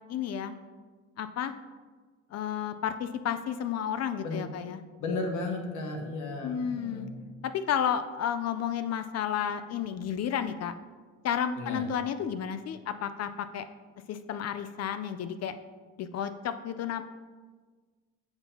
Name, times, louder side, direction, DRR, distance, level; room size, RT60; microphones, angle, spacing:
voice 1, 0.1-0.5 1.2-1.5 2.3-4.8 6.4-7.1 7.4-10.7 11.2-13.6 14.1-15.6 16.0-17.0, left 8 dB, 55° left, 10 dB, 0.4 m, -32 dB
voice 2, 5.0-7.2 11.6-11.8, left 2 dB, 80° left, 2 dB, 1.2 m, -34 dB
7.9 x 2.8 x 5.5 m, 1.4 s
cardioid pair, 90°, 30 cm